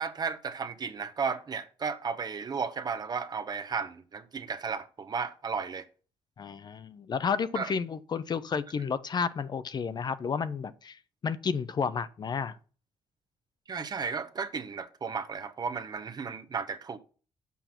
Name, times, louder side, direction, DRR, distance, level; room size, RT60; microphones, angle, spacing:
voice 1, 0.0-5.8 7.5-7.7 13.7-17.0, right 5 dB, 40° right, 0.9 m, -34 dB
voice 2, 6.4-12.6, left 6 dB, 40° left, 0.6 m, -31 dB
7.0 x 6.0 x 5.8 m
cardioid pair, 100°, 11 cm